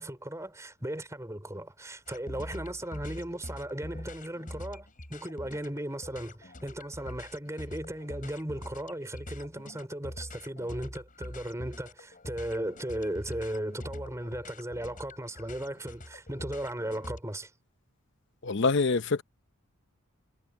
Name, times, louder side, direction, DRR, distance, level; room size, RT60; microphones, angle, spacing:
voice 1, 0.0-17.5, right 1 dB, 15° right, 3.7 m, -36 dB
sound 1, 2.1-17.2, left 1 dB, 40° left, 7.9 m, -44 dB
voice 2, 18.4-19.2, left 4 dB, 55° left, 0.7 m, -25 dB
head